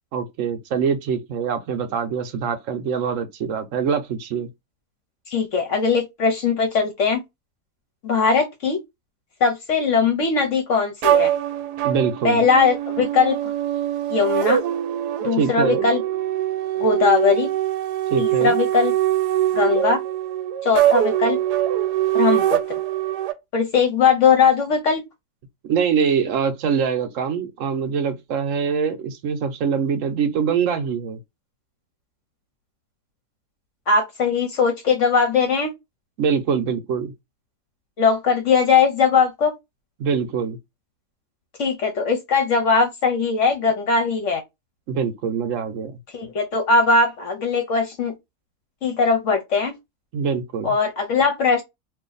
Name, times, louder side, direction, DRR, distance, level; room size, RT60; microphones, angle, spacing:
voice 1, 0.1-4.5 11.8-12.4 15.4-15.9 18.1-18.5 25.6-31.2 36.2-37.1 40.0-40.6 44.9-46.0 50.1-50.7, right 6 dB, 60° right, 1.0 m, -24 dB
voice 2, 5.3-7.2 8.0-8.8 9.4-11.3 12.2-13.5 14.1-14.6 15.2-16.0 16.8-17.5 18.2-18.9 19.5-20.0 20.6-21.4 22.1-22.6 23.5-25.0 33.9-35.7 38.0-39.5 41.6-44.4 46.1-48.1 48.8-49.7 50.6-51.6, left 5 dB, 60° left, 0.9 m, -20 dB
sound 1, 11.0-23.3, right 12 dB, 80° right, 1.2 m, -23 dB
2.7 x 2.5 x 3.8 m
omnidirectional pair, 1.7 m